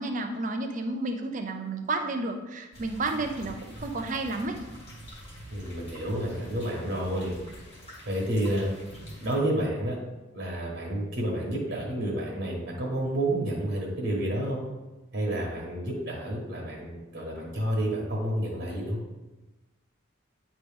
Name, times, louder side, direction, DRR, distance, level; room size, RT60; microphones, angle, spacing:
voice 1, 0.0-4.6, right 2 dB, 35° right, 5 dB, 0.5 m, -31 dB
sound 1, 2.7-9.4, equal, 30° left, 1.5 m, -46 dB
voice 2, 5.5-7.3 8.1-8.7 9.2-10.0 10.3-14.6 15.1-19.0, right 1 dB, 55° right, -2 dB, 1.3 m, -30 dB
9.1 x 3.0 x 3.5 m, 1.1 s
head